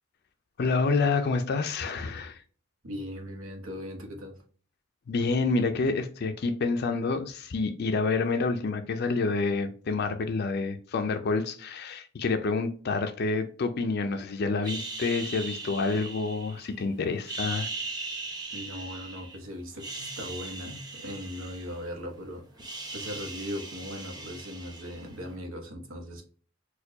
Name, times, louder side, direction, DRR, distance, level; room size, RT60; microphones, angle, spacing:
voice 1, 0.6-2.4 5.1-17.7, left 4 dB, 50° left, 0.4 m, -28 dB
voice 2, 2.8-4.4 18.5-22.4 22.9-26.2, equal, 75° right, 1.0 m, -39 dB
sound 1, 14.6-16.8 17.2-19.4 19.7-22.1 22.4-25.3, right 3 dB, 20° right, 0.7 m, -39 dB
4.3 x 2.3 x 2.7 m
head